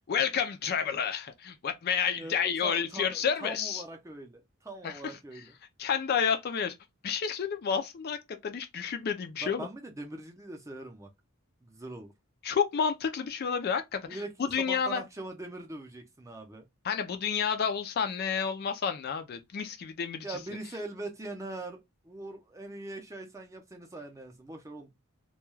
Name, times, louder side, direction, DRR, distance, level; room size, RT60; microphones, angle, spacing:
voice 1, 0.1-3.8 4.8-5.4 5.8-6.7 7.0-8.2 8.4-9.7 12.4-14.2 14.5-15.0 16.8-20.4, left 7 dB, 45° left, 0.4 m, -30 dB
voice 2, 2.2-5.5 9.4-11.1 11.6-12.1 14.1-16.6 20.2-21.8 22.0-24.9, right 2 dB, 15° right, 0.5 m, -42 dB
2.2 x 2.2 x 3.0 m
head